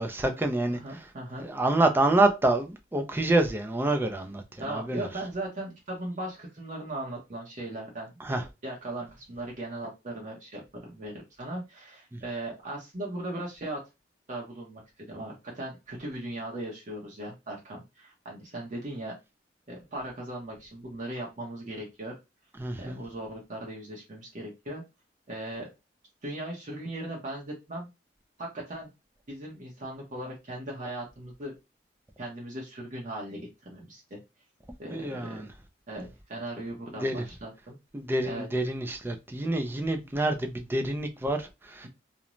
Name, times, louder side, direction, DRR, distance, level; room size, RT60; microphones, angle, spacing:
voice 1, 0.0-0.8 1.4-4.4 4.7-5.1 8.2-8.4 12.1-12.2 22.6-23.0 34.9-35.5 36.9-37.2 37.9-41.9, right 2 dB, 10° right, 0.4 m, -27 dB
voice 2, 0.7-1.5 4.6-13.8 14.3-19.1 19.7-22.2 22.8-24.8 25.3-25.7 26.2-27.9 28.4-28.9 29.3-31.5 32.2-34.2 34.8-35.5 35.9-37.8 38.2-38.5, right 1 dB, 45° right, 0.7 m, -38 dB
2.5 x 2.1 x 3.0 m
head